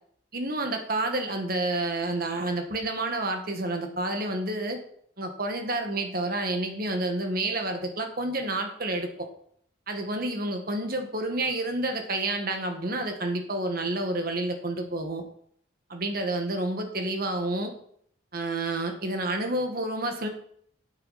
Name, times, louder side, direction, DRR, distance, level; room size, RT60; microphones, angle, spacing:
voice 1, 0.3-4.8 5.2-9.3 9.9-15.2 15.9-17.7 18.3-20.3, right 2 dB, 50° right, 4 dB, 1.5 m, -29 dB
9.5 x 8.1 x 4.2 m, 0.64 s
head